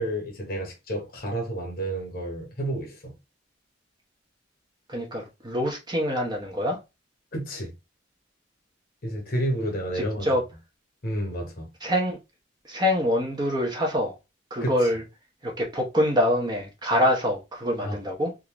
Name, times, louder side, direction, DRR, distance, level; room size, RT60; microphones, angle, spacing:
voice 1, 0.0-3.1 7.3-7.7 9.0-10.3 11.0-11.7 14.6-14.7 17.8-18.0, right 1 dB, 50° left, 1.1 m, -30 dB
voice 2, 4.9-6.8 9.9-10.4 11.8-12.2 12.6-14.2 14.5-15.0 15.4-18.3, equal, 20° right, 0.8 m, -25 dB
3.7 x 2.5 x 3.0 m
head